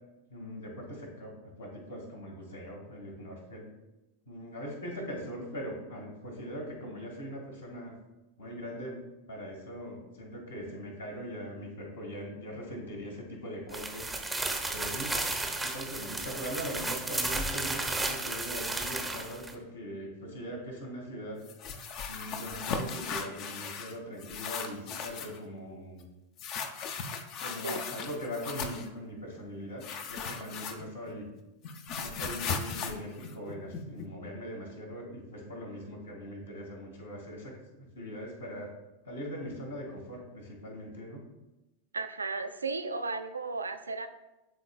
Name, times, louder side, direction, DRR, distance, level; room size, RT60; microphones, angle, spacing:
voice 1, 0.3-3.7 4.3-7.9 8.4-9.0 9.3-14.0 14.7-15.1 15.6-21.4 22.1-26.1 27.4-29.8 30.1-31.3 32.0-38.7 39.0-41.2, equal, 70° left, -1 dB, 1.8 m, -41 dB
sound 1, 13.7-19.5, right 2 dB, 5° right, 0.6 m, -33 dB
sound 2, 21.5-23.9 24.2-25.4 26.4-28.9 29.8-31.1 31.4-34.1, left 5 dB, 40° left, 0.6 m, -37 dB
voice 2, 41.9-44.1, right 3 dB, 75° right, 9 dB, 0.4 m, -34 dB
11.5 x 3.9 x 2.3 m, 0.99 s
figure-of-eight pair, 90°, 0 cm